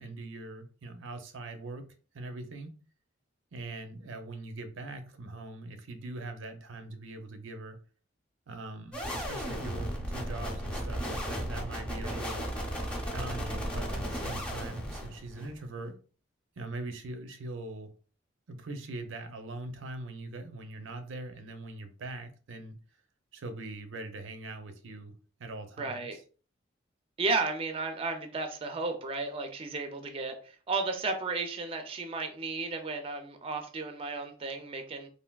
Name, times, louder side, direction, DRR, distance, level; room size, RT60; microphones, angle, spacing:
voice 1, 0.0-1.9 2.1-2.7 3.5-7.8 8.5-12.5 13.1-15.9 16.6-17.9 18.5-22.8 23.3-25.1 25.4-26.2, right 2 dB, 85° right, 0.5 m, -41 dB
sound 1, 8.9-15.6, equal, 5° left, 0.7 m, -35 dB
voice 2, 25.8-26.2 27.2-35.1, right 3 dB, 30° right, 0.4 m, -34 dB
3.3 x 2.5 x 2.2 m
head